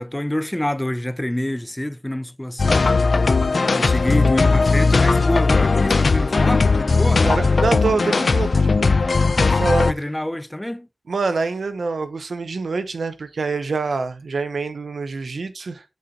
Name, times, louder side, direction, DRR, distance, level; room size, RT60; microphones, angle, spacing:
voice 1, 0.0-2.9 3.7-7.3 9.9-10.9, left 1 dB, 15° left, 0.6 m, -26 dB
sound 1, 2.6-9.9, left 4 dB, 70° left, 0.5 m, -18 dB
voice 2, 7.2-9.0 9.4-9.9 11.1-15.8, right 4 dB, 90° right, 0.8 m, -25 dB
8.3 x 4.3 x 3.8 m
wide cardioid pair, 60°, 0 cm